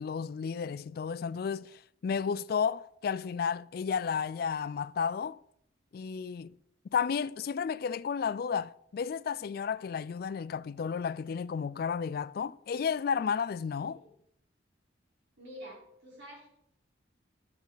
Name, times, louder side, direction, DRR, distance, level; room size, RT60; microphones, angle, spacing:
voice 1, 0.0-5.4 5.9-6.6 6.9-14.0, left 6 dB, 50° left, 0.3 m, -32 dB
voice 2, 15.4-16.6, equal, 70° right, 4.2 m, -48 dB
12.5 x 7.2 x 4.0 m
head